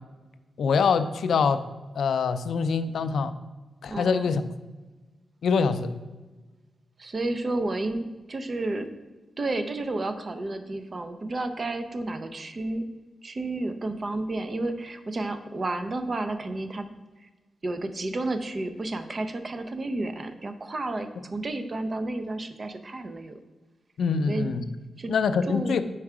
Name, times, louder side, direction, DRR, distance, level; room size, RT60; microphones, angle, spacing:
voice 1, 0.6-1.6 2.0-3.4 3.8-4.4 5.4-5.9 24.0-24.6 25.1-25.8, left 5 dB, 75° left, 11 dB, 0.3 m, -24 dB
voice 2, 3.9-4.3 7.0-8.9 9.4-12.9 13.2-16.9 17.2-17.3 17.6-23.4 24.3-24.5 25.0-25.1 25.5-25.8, right 2 dB, 40° right, 9 dB, 0.5 m, -31 dB
4.7 x 4.4 x 4.8 m, 1.2 s
cardioid pair, 90°, 0 cm